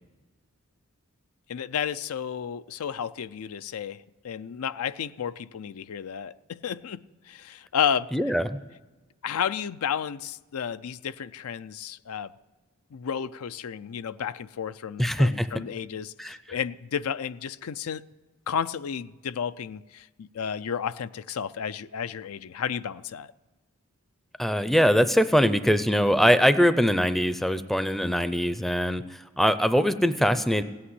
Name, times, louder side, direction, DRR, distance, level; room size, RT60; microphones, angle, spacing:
voice 1, 1.5-8.1 9.2-12.3 12.9-18.0 18.5-23.3, left 8 dB, 85° left, 14 dB, 0.4 m, -32 dB
voice 2, 8.1-8.6 15.0-15.5 16.2-16.4 24.4-30.6, equal, ahead, 11 dB, 0.4 m, -22 dB
17.0 x 8.7 x 9.6 m, 1.2 s
head